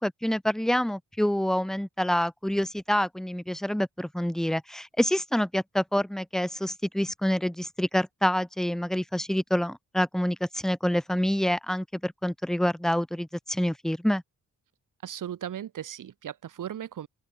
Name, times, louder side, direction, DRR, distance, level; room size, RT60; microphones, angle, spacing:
voice 1, 0.0-14.2, equal, ahead, 1.4 m, -27 dB
voice 2, 15.0-17.1, right 10 dB, 85° right, 5.6 m, -37 dB
open air
wide cardioid pair, 165°, 31 cm